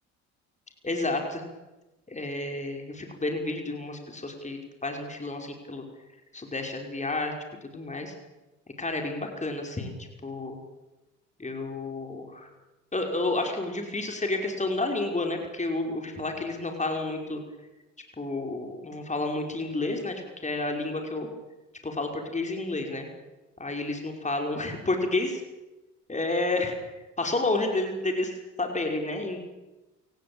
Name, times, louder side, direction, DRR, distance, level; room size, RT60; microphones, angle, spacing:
voice 1, 0.8-1.5 2.1-5.8 6.3-7.3 7.6-8.1 8.8-10.6 11.4-12.5 12.9-17.4 18.2-20.1 20.4-21.3 21.8-23.1 23.6-25.4 26.1-26.8 27.2-29.4, left 2 dB, 20° left, 3 dB, 5.5 m, -30 dB
28.0 x 18.5 x 9.0 m, 1.1 s
supercardioid pair, 65°, 35 cm